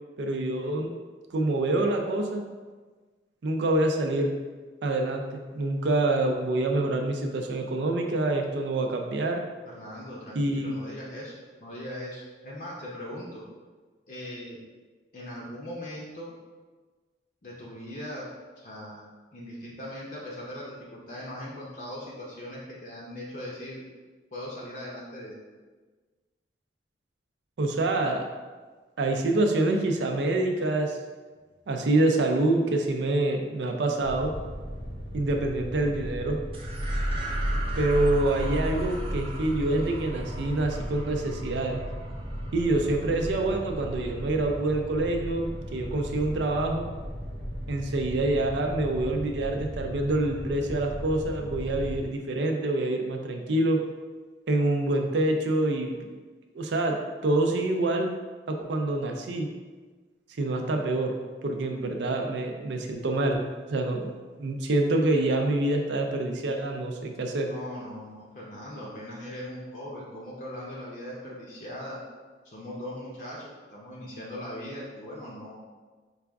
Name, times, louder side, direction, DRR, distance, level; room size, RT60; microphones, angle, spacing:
voice 1, 0.2-0.9 1.3-2.4 3.4-4.3 4.8-9.4 10.3-10.8 27.6-28.2 29.0-31.0 31.7-34.3 35.1-36.4 37.8-41.8 42.5-46.9 47.7-53.8 54.5-56.0 56.5-57.0 57.2-58.1 58.5-59.5 60.4-61.1 61.4-63.4 63.7-64.1 64.4-67.5, right 2 dB, 80° right, 3 dB, 0.4 m, -26 dB
voice 2, 9.6-13.4 14.1-14.6 15.1-16.3 17.4-18.3 18.6-19.0 19.3-23.8 24.3-25.4 67.4-72.0 72.4-75.5, left 1 dB, 45° left, -5 dB, 0.6 m, -39 dB
sound 1, 34.0-52.0, equal, 85° left, 0.9 m, -37 dB
sound 2, 36.5-45.2, right 1 dB, 30° right, 0.6 m, -34 dB
4.8 x 2.3 x 3.4 m, 1.4 s
head